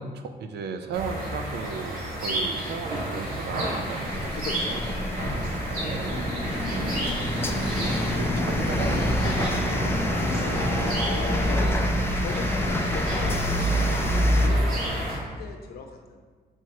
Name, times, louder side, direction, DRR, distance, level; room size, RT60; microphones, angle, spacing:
voice 1, 0.0-5.4 5.6-10.3, right 5 dB, 80° right, 7 dB, 0.6 m, -36 dB
sound 1, 0.9-15.2, right 1 dB, 60° right, 2.0 m, -28 dB
sound 2, 4.0-14.5, left 2 dB, 15° left, 0.4 m, -29 dB
voice 2, 4.3-4.8 10.3-11.7 11.9-16.2, left 5 dB, 65° left, 3 dB, 0.8 m, -39 dB
sound 3, 6.0-11.7, equal, 25° right, 1.7 m, -31 dB
4.6 x 4.6 x 5.9 m, 1.5 s
wide cardioid pair, 175°, 17 cm